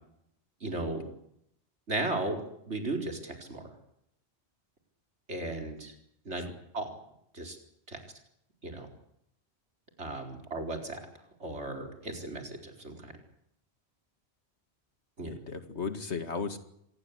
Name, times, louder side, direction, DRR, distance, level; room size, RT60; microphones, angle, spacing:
voice 1, 0.6-1.1 1.9-3.7 5.3-5.9 6.2-6.4 6.7-6.9 7.3-7.6 7.9-8.0 8.6-8.9 10.0-11.0 11.4-13.1 15.2-15.3, right 2 dB, 85° right, 3 dB, 4.7 m, -35 dB
voice 2, 15.2-16.6, left 5 dB, 80° left, 9 dB, 2.4 m, -36 dB
26.0 x 19.5 x 8.1 m, 0.75 s
omnidirectional pair, 1.1 m